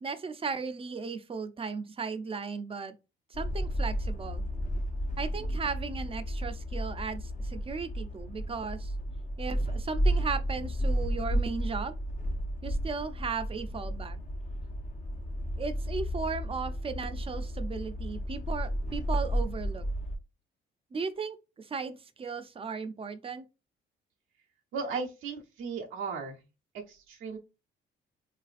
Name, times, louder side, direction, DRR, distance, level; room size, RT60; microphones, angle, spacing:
voice 1, 0.0-2.9 3.3-4.5 5.2-8.9 9.4-12.0 12.6-14.2 15.6-19.8 20.9-23.5, right 5 dB, 30° right, 0.4 m, -36 dB
sound 1, 3.3-20.2, equal, 40° left, 0.6 m, -32 dB
voice 2, 24.7-26.4 26.7-27.4, right 5 dB, 85° right, 0.7 m, -36 dB
3.1 x 2.5 x 2.4 m
cardioid pair, 90°, 20 cm